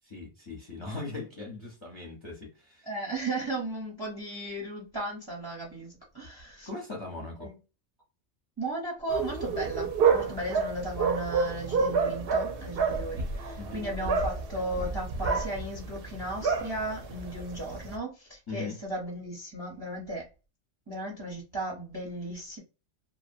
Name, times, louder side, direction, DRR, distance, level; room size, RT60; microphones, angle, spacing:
voice 1, 0.0-2.9 6.6-7.5 13.6-13.9 18.5-18.8, left 3 dB, 30° left, 0.6 m, -39 dB
voice 2, 2.8-6.7 7.4-7.5 8.6-20.2 20.9-22.6, right 1 dB, 25° right, 0.6 m, -35 dB
sound 1, 9.1-18.0, right 5 dB, 60° right, 0.6 m, -29 dB
2.7 x 2.1 x 2.6 m
omnidirectional pair, 1.3 m